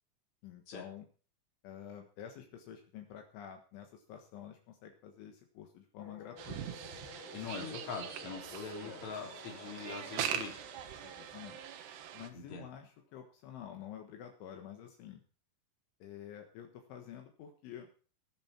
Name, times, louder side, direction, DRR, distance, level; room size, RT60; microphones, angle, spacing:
voice 1, 0.4-1.1 1.6-6.8 7.6-7.8 8.8-9.0 11.0-11.6 12.1-15.2 16.0-17.9, left 9 dB, 75° left, 4 dB, 3.8 m, -49 dB
sound 1, 6.0-12.9, left 6 dB, 60° left, 2.8 m, -55 dB
sound 2, 6.4-12.3, right 10 dB, 70° right, 3.1 m, -42 dB
voice 2, 7.3-10.5 12.3-12.7, left 5 dB, 40° left, 0 dB, 4.4 m, -43 dB
20.5 x 7.5 x 4.4 m, 0.38 s
omnidirectional pair, 5.6 m